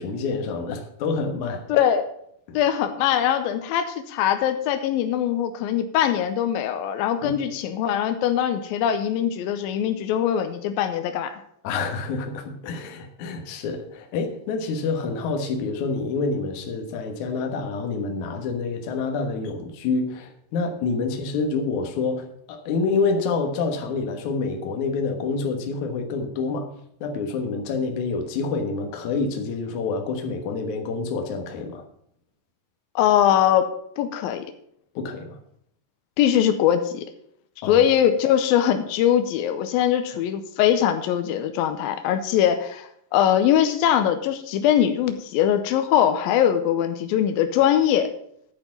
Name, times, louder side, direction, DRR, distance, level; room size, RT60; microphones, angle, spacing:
voice 1, 0.0-1.7 2.5-2.6 7.2-7.4 11.6-26.7 27.0-31.8 35.0-35.4 37.6-37.9, left 4 dB, 65° left, 5 dB, 2.0 m, -27 dB
voice 2, 1.7-2.0 2.5-11.3 33.0-34.4 36.2-37.1 37.6-48.1, left 10 dB, 90° left, 8 dB, 2.1 m, -21 dB
10.5 x 5.7 x 7.1 m, 0.69 s
omnidirectional pair, 5.1 m